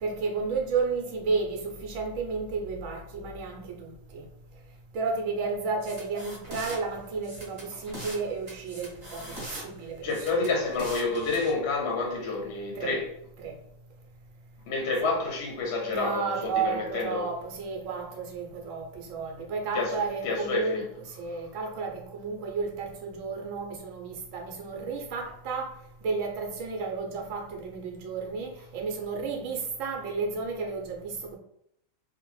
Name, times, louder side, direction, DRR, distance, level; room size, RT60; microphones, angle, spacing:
voice 1, 0.0-4.2 4.9-10.5 12.7-13.0 13.4-13.6 15.9-20.8 21.1-25.7 26.0-31.4, right 4 dB, 70° right, 1.0 m, -32 dB
sound 1, 5.8-6.8 7.2-8.2 8.5-9.6 10.1-11.5, right 1 dB, 30° right, 1.1 m, -41 dB
voice 2, 10.0-13.1 14.7-17.3 19.7-20.0 20.2-20.8, left 3 dB, 60° left, 0.7 m, -29 dB
2.9 x 2.1 x 3.1 m
omnidirectional pair, 1.4 m